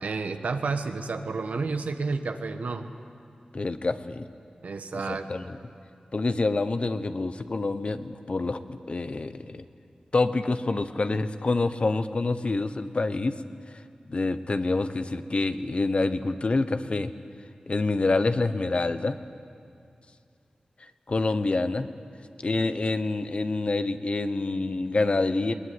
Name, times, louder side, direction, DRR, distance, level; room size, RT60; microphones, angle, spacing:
voice 1, 0.0-2.9 4.6-5.3, right 4 dB, 90° right, 7 dB, 1.4 m, -30 dB
voice 2, 3.5-4.3 5.1-5.6 6.1-9.6 10.1-13.4 14.1-17.1 17.7-19.2 21.1-21.9 22.4-25.5, left 3 dB, 50° left, 11 dB, 1.0 m, -27 dB
21.5 x 20.0 x 9.7 m, 2.4 s
wide cardioid pair, 70°, 2 cm